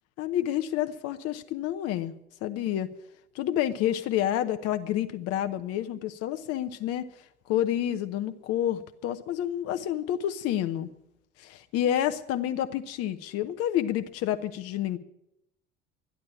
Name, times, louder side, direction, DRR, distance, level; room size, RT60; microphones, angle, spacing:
voice 1, 0.2-2.1 2.4-2.9 3.3-7.1 7.5-10.9 11.4-15.0, left 11 dB, 45° left, 10 dB, 0.8 m, -29 dB
12.5 x 11.0 x 8.6 m, 0.83 s
figure-of-eight pair, 65°, 35 cm